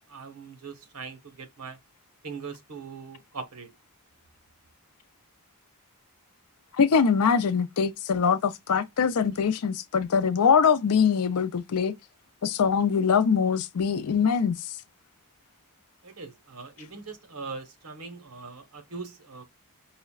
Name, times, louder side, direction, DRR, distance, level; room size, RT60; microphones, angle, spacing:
voice 1, 0.1-1.8 2.2-3.7 16.0-19.4, right 4 dB, 75° right, 0.9 m, -41 dB
voice 2, 6.8-11.9 12.4-14.6, left 6 dB, 80° left, 0.5 m, -23 dB
5.6 x 2.1 x 2.3 m
head